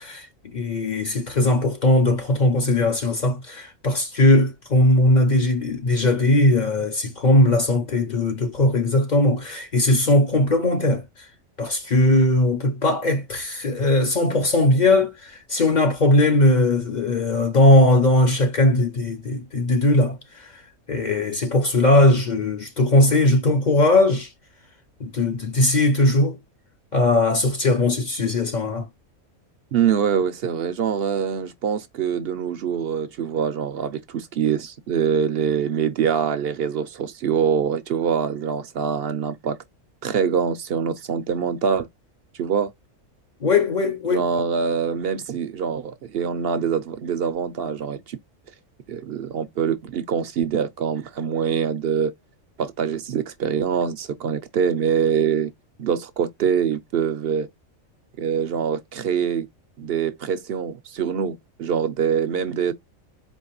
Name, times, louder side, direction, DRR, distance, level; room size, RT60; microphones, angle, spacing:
voice 1, 0.0-11.3 11.6-20.6 20.9-24.3 25.0-26.4 26.9-28.9 43.4-44.2, left 1 dB, 45° left, 0.7 m, -19 dB
voice 2, 29.7-39.6 40.0-41.9 42.4-42.7 44.1-48.2 48.9-52.1 52.6-55.5 55.8-57.5 58.2-59.5 59.8-62.7, right 7 dB, 60° right, 0.6 m, -24 dB
4.5 x 2.9 x 2.9 m
omnidirectional pair, 1.4 m